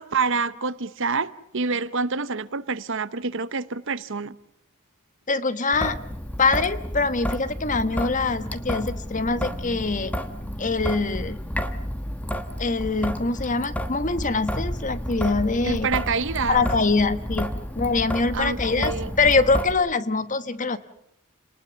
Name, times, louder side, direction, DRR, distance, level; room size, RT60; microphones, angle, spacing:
voice 1, 0.0-4.3 15.6-16.7 18.3-19.1, right 4 dB, 60° right, 0.9 m, -27 dB
voice 2, 5.3-6.0 6.4-10.1 10.6-11.4 12.6-15.9 16.5-20.8, left 3 dB, 35° left, 1.2 m, -24 dB
Traffic noise roadway noise / Drip / Trickle dribble, 5.7-19.7, equal, 5° left, 1.3 m, -31 dB
29.5 x 20.0 x 7.0 m
head